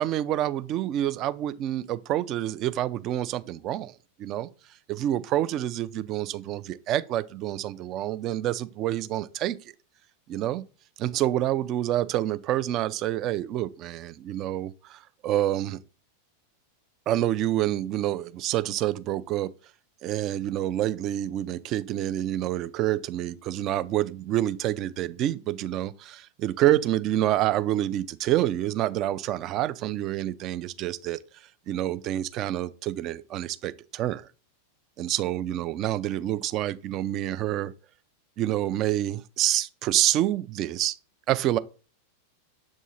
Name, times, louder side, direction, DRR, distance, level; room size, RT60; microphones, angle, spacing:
voice 1, 0.0-4.5 4.9-9.6 10.3-10.6 11.0-15.8 17.1-19.5 20.0-31.2 31.7-34.3 35.0-37.7 38.4-41.0 41.3-41.6, right 13 dB, 35° right, 0.4 m, -27 dB
7.4 x 3.6 x 4.2 m
figure-of-eight pair, 90°, 0 cm